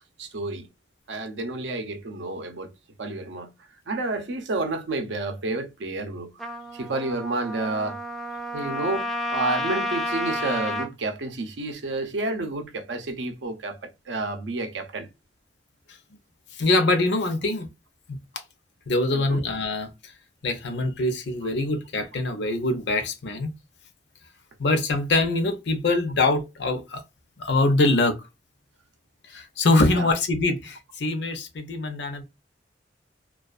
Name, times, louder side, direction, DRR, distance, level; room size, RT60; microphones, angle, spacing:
voice 1, 0.2-0.7 1.1-2.7 3.0-3.5 3.9-6.3 6.7-8.0 8.5-15.1 19.1-19.4 29.9-30.1, right 2 dB, 85° right, 0.6 m, -30 dB
Trumpet, 6.4-10.9, left 1 dB, ahead, 0.3 m, -30 dB
voice 2, 16.5-17.7 18.9-20.1 20.4-23.5 24.6-27.0 27.4-28.1 29.3-32.2, left 2 dB, 70° left, 0.6 m, -24 dB
2.3 x 2.3 x 2.3 m
head